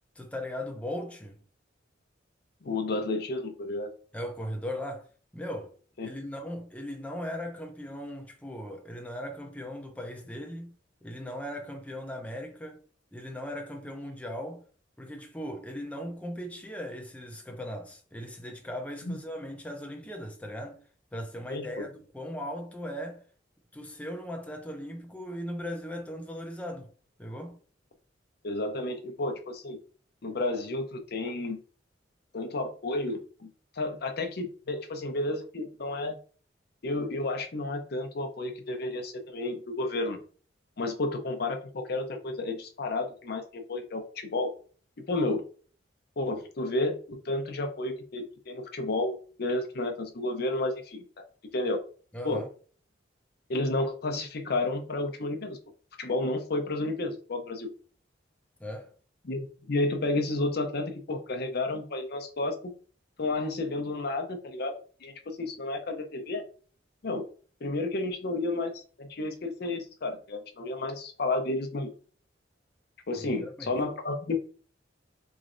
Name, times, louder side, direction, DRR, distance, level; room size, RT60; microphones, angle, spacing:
voice 1, 0.2-1.4 4.1-5.1 5.3-5.7 6.0-12.8 13.1-14.6 15.0-20.8 21.1-23.3 23.7-26.9 27.2-27.6 52.1-52.5 58.6-58.9 73.4-73.7, equal, 5° left, 0.5 m, -38 dB
voice 2, 2.6-3.9 6.0-6.1 19.1-19.2 21.5-21.7 28.4-29.8 30.2-31.6 32.3-33.5 33.7-36.2 36.8-40.2 40.8-44.5 45.1-45.4 46.2-51.1 51.5-51.8 52.2-52.4 53.5-55.6 56.0-57.7 59.2-62.7 63.2-64.7 65.0-66.4 67.0-67.2 67.6-71.9 73.1-74.4, left 2 dB, 55° left, 0.6 m, -31 dB
3.9 x 3.2 x 2.5 m
head